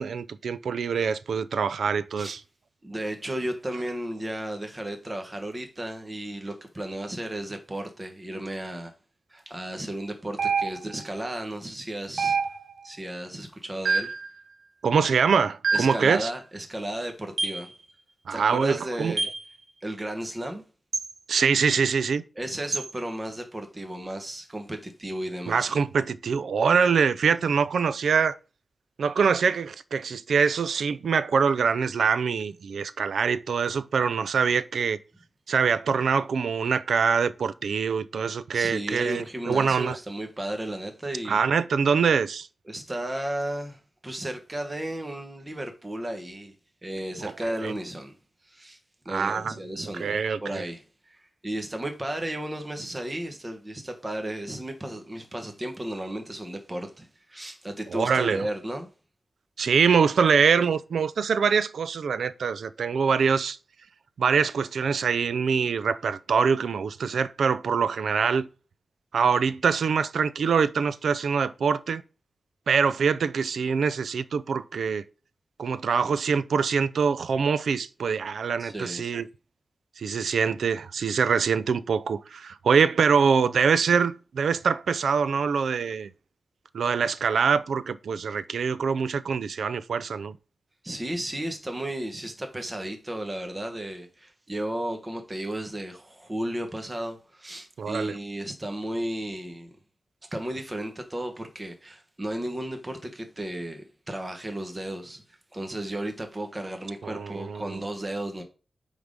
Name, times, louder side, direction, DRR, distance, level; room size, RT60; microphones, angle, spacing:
voice 1, 0.0-2.4 14.8-16.3 18.3-19.2 21.3-22.2 25.5-28.4 29.0-35.0 35.5-40.0 41.3-42.5 47.6-47.7 49.1-49.5 50.0-50.6 57.9-58.4 59.6-63.6 64.2-68.5 69.1-72.0 72.7-75.0 75.6-79.3 80.0-86.1 86.7-90.4 97.8-98.2 107.0-107.8, right 6 dB, 85° right, 0.4 m, -24 dB
voice 2, 2.8-8.9 9.3-12.4 12.8-14.1 15.7-17.7 18.3-19.3 19.8-20.6 22.4-25.7 38.5-41.5 42.7-46.5 46.8-48.1 48.5-48.8 49.0-58.9 78.6-79.0 90.8-99.7 100.3-108.4, right 1 dB, 20° right, 1.1 m, -34 dB
sound 1, 10.4-11.1 12.2-12.9 13.8-14.3 15.6-16.1 17.4-17.7 19.2-19.4 20.9-21.1 22.7-22.9, right 4 dB, 65° right, 0.9 m, -26 dB
7.9 x 3.6 x 5.2 m
wide cardioid pair, 115°, 0 cm